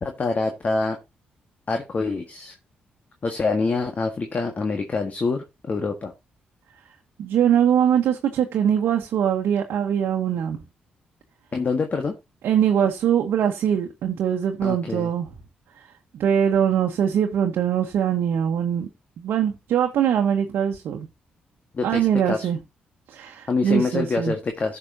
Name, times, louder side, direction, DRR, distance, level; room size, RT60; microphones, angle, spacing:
voice 1, 0.0-1.0 1.7-2.6 3.2-6.1 11.5-12.2 14.6-15.1 21.7-22.5 23.5-24.8, left 4 dB, 45° left, 1.6 m, -26 dB
voice 2, 7.2-10.6 12.4-15.3 16.1-18.9 19.2-21.1 21.8-22.6 23.1-24.4, right 9 dB, 75° right, 1.1 m, -22 dB
15.0 x 5.9 x 2.8 m
supercardioid pair, 55°, 4 cm